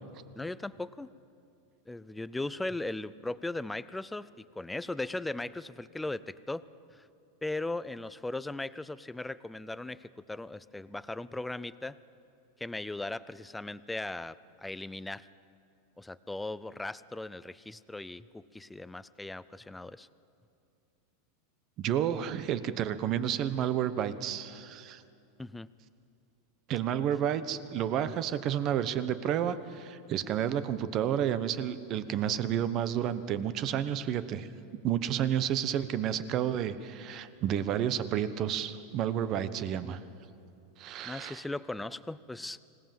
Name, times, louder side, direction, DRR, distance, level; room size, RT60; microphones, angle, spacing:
voice 1, 0.4-1.1 1.9-7.1 7.4-12.0 12.6-15.3 16.0-20.1 25.4-25.7 41.0-42.6, left 2 dB, 5° left, 16 dB, 0.4 m, -38 dB
voice 2, 21.8-25.0 26.7-34.5 34.8-40.0 40.8-41.4, right 10 dB, 35° right, 13 dB, 1.0 m, -31 dB
25.0 x 18.0 x 7.6 m, 2.6 s
supercardioid pair, 160°, 0 cm